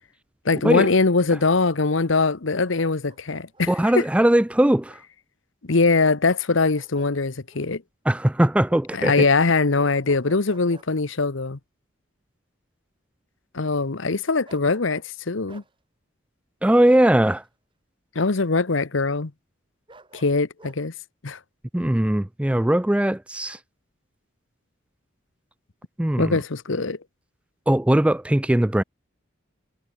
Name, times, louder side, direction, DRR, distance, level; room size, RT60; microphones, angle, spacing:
voice 1, 0.4-4.0 5.6-7.8 8.9-11.6 13.5-15.6 18.1-19.3 20.1-20.9 21.2-21.4 26.2-27.0, left 3 dB, 75° left, 1.0 m, -22 dB
Bark, 2.6-3.7 6.5-7.2 7.5-7.7 9.8-10.9 14.4-15.1 15.5-15.7 17.2-17.5 19.9-20.8, right 2 dB, 25° right, 2.4 m, -50 dB
voice 2, 3.7-5.0 8.1-9.3 16.6-17.4 21.7-23.6 26.0-26.4 27.7-28.8, right 1 dB, 5° right, 0.3 m, -20 dB
head